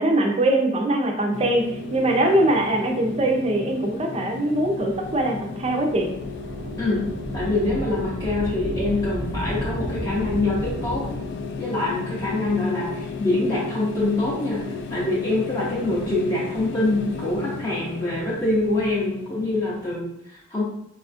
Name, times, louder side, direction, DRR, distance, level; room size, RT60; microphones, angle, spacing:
voice 1, 0.0-1.6 1.9-6.1, right 1 dB, 35° right, 2 dB, 0.5 m, -22 dB
sound 1, 1.3-20.0, left 4 dB, 65° left, 0.3 m, -34 dB
Thunder / Rain, 4.8-13.7 14.5-14.6 15.5-16.8 18.3-19.1, equal, 85° right, 0.6 m, -35 dB
voice 2, 7.3-11.1 11.6-20.6, left 2 dB, 20° left, -6 dB, 0.6 m, -25 dB
4.0 x 2.4 x 2.5 m, 0.74 s
head